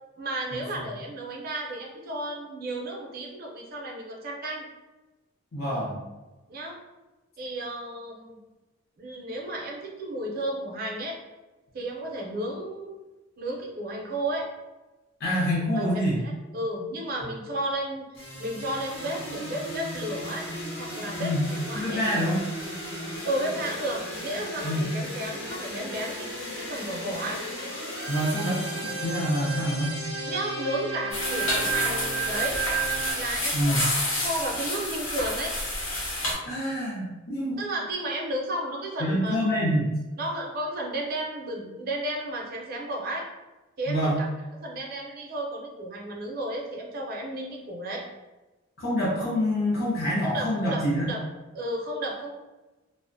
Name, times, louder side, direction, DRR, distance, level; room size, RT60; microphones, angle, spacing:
voice 1, 0.2-4.6 6.5-6.8 7.4-8.4 9.0-11.2 11.7-12.9 13.4-14.5 15.7-18.1 18.4-20.5 20.8-22.0 23.2-26.3 26.6-27.4 30.3-32.6 33.1-35.5 37.6-39.4 40.2-43.3 43.8-44.2 44.6-48.1 50.2-50.8 51.1-51.2 51.5-52.3, right 1 dB, 45° right, -1 dB, 0.5 m, -33 dB
voice 2, 5.5-6.0 15.2-16.2 21.2-21.4 21.7-22.4 24.6-24.9 28.1-30.0 33.5-33.8 36.5-37.6 39.0-39.8 43.9-44.2 48.8-51.1, equal, 50° left, -6 dB, 0.5 m, -26 dB
sound 1, 18.1-33.1, right 2 dB, 65° left, 0.9 m, -34 dB
sound 2, 31.1-36.3, left 1 dB, 90° left, 0.9 m, -29 dB
2.4 x 2.0 x 2.5 m, 1.1 s
head